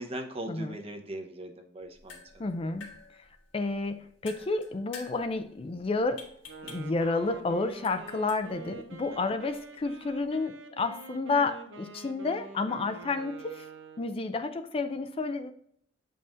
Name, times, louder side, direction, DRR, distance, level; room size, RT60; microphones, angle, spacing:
voice 1, 0.0-2.5 9.3-9.4, right 1 dB, 30° right, 0.8 m, -40 dB
sound 1, 1.8-10.4, left 4 dB, 85° left, 1.5 m, -52 dB
voice 2, 2.4-2.9 3.5-6.3 6.6-13.7 14.0-15.5, left 3 dB, 30° left, 0.4 m, -30 dB
Wind instrument woodwind instrument, 6.4-14.3, right 4 dB, 85° right, 0.8 m, -47 dB
7.5 x 5.4 x 2.6 m
head